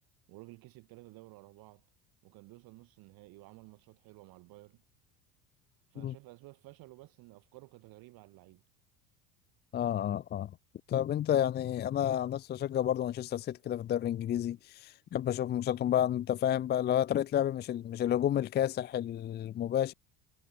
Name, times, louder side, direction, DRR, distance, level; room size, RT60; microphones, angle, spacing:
voice 1, 0.3-1.8 2.2-4.8 5.9-8.6, right 21 dB, 50° right, 6.2 m, -53 dB
voice 2, 9.7-10.5 10.9-19.9, left 11 dB, 25° left, 0.6 m, -30 dB
figure-of-eight pair, 65°, 44 cm